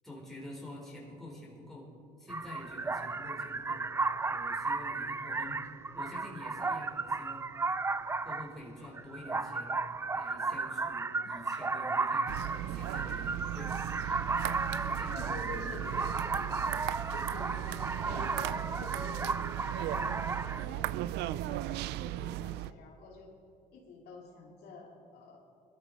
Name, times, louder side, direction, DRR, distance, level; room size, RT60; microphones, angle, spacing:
voice 1, 0.0-1.9 2.2-3.8 4.3-7.5 8.2-9.8 10.1-13.8 14.8-15.7 17.4-17.7, left 1 dB, ahead, -4 dB, 4.1 m, -48 dB
sound 1, 2.3-20.6, right 4 dB, 15° right, 0.4 m, -34 dB
sound 2, 12.3-22.7, right 14 dB, 85° right, 0.4 m, -37 dB
voice 2, 15.1-16.6 17.1-19.4 19.8-23.3 23.7-25.4, left 4 dB, 70° left, -2 dB, 2.8 m, -48 dB
21.0 x 12.5 x 5.2 m, 2.5 s
cardioid pair, 110°, 17 cm